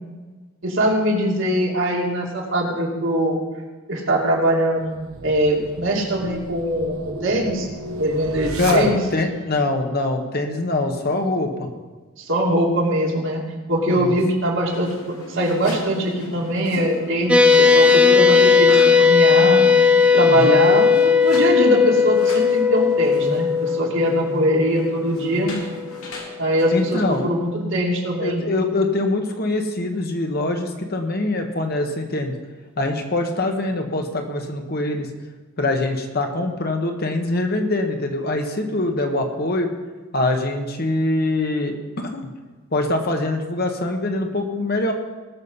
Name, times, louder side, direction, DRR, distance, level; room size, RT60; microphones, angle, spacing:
voice 1, 0.6-3.4 3.9-5.0 5.2-7.7 8.0-9.0 12.2-13.4 13.7-19.6 20.1-25.6 26.4-28.4, right 1 dB, 60° right, -1 dB, 2.5 m, -22 dB
sound 1, 4.8-9.4, right 2 dB, 80° right, 1.1 m, -33 dB
voice 2, 8.6-11.7 14.0-14.2 20.3-20.6 26.7-27.3 28.2-32.3 32.8-35.1 35.6-39.7 40.1-42.3 42.7-44.9, left 2 dB, 45° left, 4 dB, 1.3 m, -23 dB
sound 2, 14.6-27.3, left 1 dB, 85° left, 2.4 m, -38 dB
sound 3, 17.3-26.0, left 5 dB, 5° right, 0.6 m, -16 dB
19.0 x 6.5 x 5.6 m, 1.3 s
head